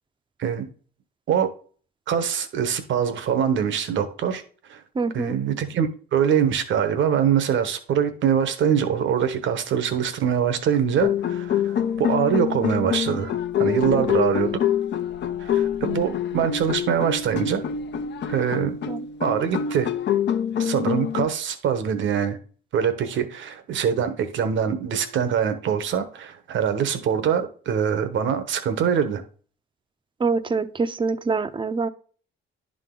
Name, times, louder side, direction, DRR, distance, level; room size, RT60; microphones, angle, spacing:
voice 1, 2.1-4.4 4.7-4.8 5.1-13.3 13.6-14.6 15.4-17.6 18.3-18.8 19.2-19.9 20.6-22.4 22.7-29.2, right 8 dB, 70° right, 1.1 m, -23 dB
voice 2, 5.0-5.4 18.9-19.0 30.2-31.9, right 4 dB, 25° right, 0.6 m, -25 dB
sound 1, 11.0-21.3, left 9 dB, 65° left, 0.8 m, -26 dB
11.0 x 3.8 x 3.8 m
cardioid pair, 90°, 20 cm